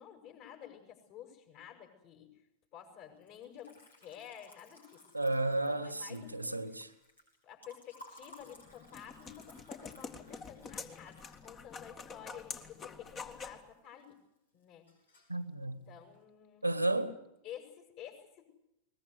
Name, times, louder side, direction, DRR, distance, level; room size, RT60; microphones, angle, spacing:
voice 1, 0.0-2.3 2.7-5.1 5.7-6.6 7.4-14.2 14.5-14.9 15.6-16.7 17.4-18.5, left 9 dB, 45° left, 6.6 m, -51 dB
Liquid, 3.2-13.4 13.7-14.4 14.6-15.4, left 1 dB, 75° left, 7.8 m, -59 dB
voice 2, 5.1-6.9 15.3-15.8 16.6-17.2, right 2 dB, 85° right, 1.8 m, -33 dB
sound 1, 8.4-13.6, left 5 dB, 25° left, 2.0 m, -47 dB
22.0 x 21.0 x 8.2 m
figure-of-eight pair, 90°, 0 cm